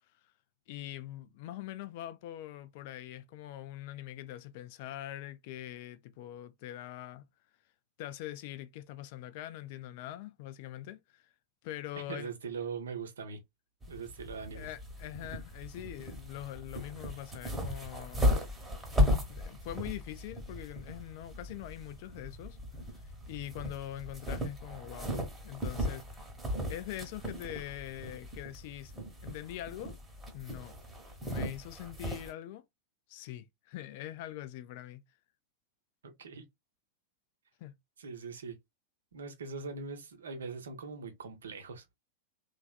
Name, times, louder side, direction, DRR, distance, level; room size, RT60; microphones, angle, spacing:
voice 1, 0.7-7.2 8.0-11.3 11.6-12.3 14.5-18.4 19.3-22.6 22.9-26.2 26.7-28.9 29.2-30.0 30.3-30.7 31.2-32.6 33.1-35.0 37.6-37.7, left 13 dB, 50° left, 0.4 m, -43 dB
voice 2, 12.1-13.4 13.9-14.7 36.0-36.4 38.0-38.6 39.1-41.8, right 5 dB, 65° right, 0.7 m, -41 dB
sound 1, 13.8-32.3, left 1 dB, 10° right, 1.0 m, -36 dB
3.2 x 2.4 x 2.3 m
figure-of-eight pair, 90°, 0 cm